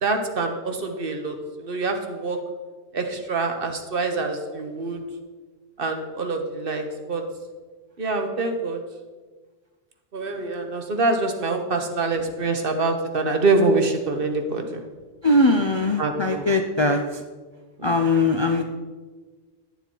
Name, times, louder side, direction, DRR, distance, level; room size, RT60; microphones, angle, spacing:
voice 1, 0.0-2.4 2.9-5.0 5.8-7.2 8.0-8.8 10.1-14.8 16.0-16.5 17.8-17.9, right 3 dB, 55° right, 5 dB, 1.2 m, -25 dB
voice 2, 15.2-17.2 17.8-18.6, left 2 dB, 35° left, 4 dB, 0.4 m, -21 dB
11.0 x 7.2 x 4.5 m, 1.4 s
omnidirectional pair, 1.1 m